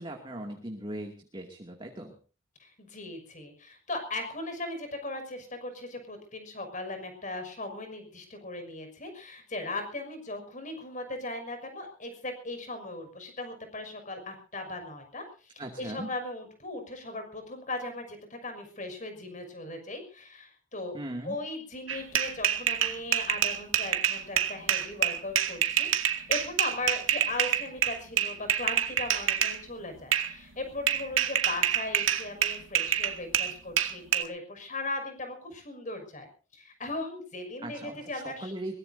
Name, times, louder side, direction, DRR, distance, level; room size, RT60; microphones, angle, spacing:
voice 1, 0.0-2.2 15.6-16.1 20.9-21.4 37.6-38.8, right 1 dB, 25° right, 2 dB, 2.5 m, -39 dB
voice 2, 2.6-21.0 21.2-25.9 26.3-36.3 36.5-38.5, left 2 dB, 40° left, 6 dB, 6.1 m, -38 dB
sound 1, 21.9-29.6 30.1-30.3 30.9-34.2, right 9 dB, 90° right, 2.1 m, -27 dB
22.5 x 21.0 x 2.8 m, 0.38 s
head